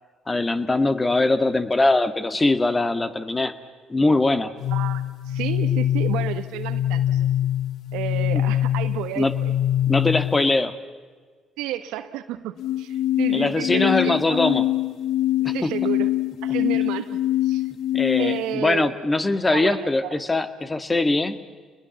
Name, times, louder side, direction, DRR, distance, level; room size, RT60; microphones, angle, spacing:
voice 1, 0.3-3.6 3.9-4.5 8.3-8.4 9.2-9.3 9.9-10.8 13.3-14.6 15.4-15.7 17.9-21.4, left 2 dB, 25° left, 10 dB, 1.7 m, -22 dB
sound 1, 4.6-10.6 12.6-18.6, left 12 dB, 70° left, 0.8 m, -24 dB
voice 2, 4.7-7.3 7.9-9.5 11.6-14.5 15.4-16.1 16.4-17.2 17.4-17.6 18.2-19.0 19.5-20.2, right 12 dB, 85° right, 10 dB, 1.3 m, -31 dB
29.5 x 21.0 x 7.2 m, 1.5 s
supercardioid pair, 65°, 0 cm